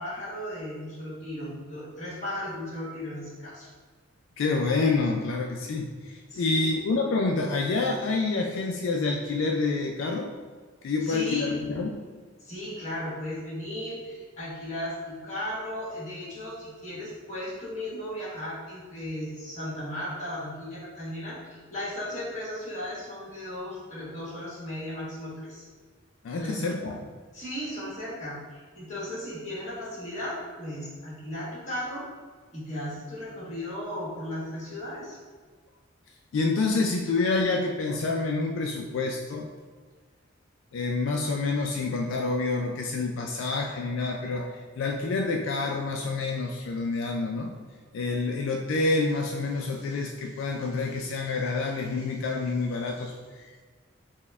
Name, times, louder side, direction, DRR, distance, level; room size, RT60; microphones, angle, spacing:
voice 1, 0.0-3.7 6.3-6.7 11.0-11.6 12.4-25.7 26.4-26.6 27.3-32.0 32.5-35.2, left 1 dB, 35° left, -7 dB, 1.4 m, -36 dB
voice 2, 4.4-10.3 10.8-12.0 26.2-27.0 36.3-39.5 40.7-47.5 47.9-53.6, left 3 dB, 80° left, 1 dB, 0.3 m, -28 dB
4.1 x 2.2 x 3.4 m, 1.5 s
head